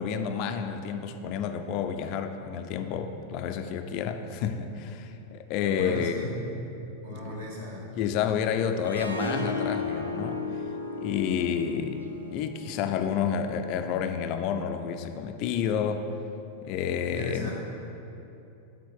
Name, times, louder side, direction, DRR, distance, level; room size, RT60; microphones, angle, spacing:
voice 1, 0.0-6.2 7.1-7.4 8.0-10.4 10.9-12.0 12.3-16.1 16.6-17.5, left 7 dB, 40° left, 7 dB, 0.4 m, -30 dB
voice 2, 5.6-6.3 7.0-7.9 17.0-17.5, left 1 dB, 60° right, -3 dB, 1.5 m, -37 dB
Harp, 8.8-13.9, left 3 dB, 80° right, 0.5 m, -35 dB
7.1 x 3.7 x 6.3 m, 2.8 s
figure-of-eight pair, 90°, 0 cm